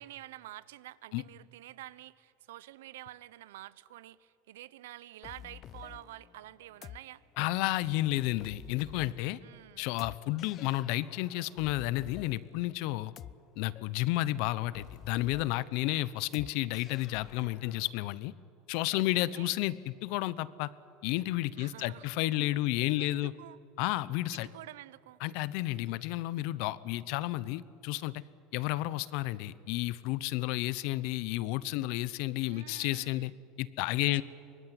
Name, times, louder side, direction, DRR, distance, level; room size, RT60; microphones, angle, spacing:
voice 1, 0.0-7.2 9.4-9.9 18.9-19.5 21.6-22.1 23.0-23.6 24.3-25.2 32.5-33.4 34.0-34.2, right 15 dB, 85° right, 18 dB, 0.8 m, -49 dB
sound 1, 5.2-17.9, left 11 dB, 45° left, 0.7 m, -51 dB
voice 2, 7.4-9.4 9.8-13.1 13.6-18.3 18.7-20.7 21.0-23.3 23.8-24.5 25.2-28.2 28.5-33.3 33.6-34.2, left 17 dB, 70° left, 18 dB, 0.9 m, -31 dB
24.0 x 20.0 x 9.8 m, 2.4 s
supercardioid pair, 95°, 0 cm